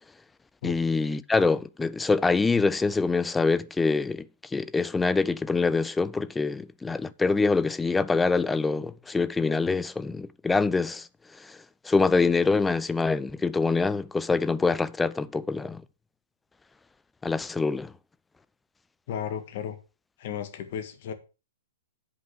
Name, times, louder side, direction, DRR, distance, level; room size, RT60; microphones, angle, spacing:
voice 1, 0.6-4.3 4.5-11.1 11.5-11.6 11.8-15.8 17.2-17.9, left 4 dB, 5° left, 0.4 m, -25 dB
voice 2, 19.1-19.8 20.2-21.1, left 8 dB, 50° left, 1.8 m, -34 dB
7.9 x 5.5 x 6.5 m
hypercardioid pair, 160°, 0 cm